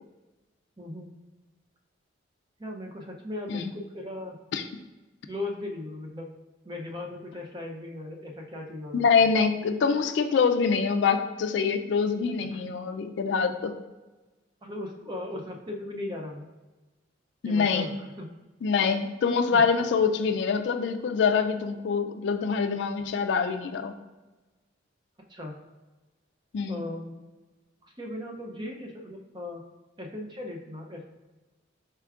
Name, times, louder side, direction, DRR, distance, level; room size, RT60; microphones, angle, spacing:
voice 1, 0.8-1.1 2.6-4.4 5.3-6.3 6.6-9.3 12.5-12.7 14.6-16.5 17.4-18.3 19.5-19.6 25.3-25.5 26.7-27.3 27.8-29.6 30.0-31.1, left 1 dB, 25° right, 0 dB, 0.5 m, -38 dB
voice 2, 8.9-13.7 17.4-17.9 18.6-23.9 26.5-26.8, left 5 dB, 65° left, 7 dB, 0.3 m, -25 dB
4.6 x 4.3 x 2.3 m, 1.2 s
head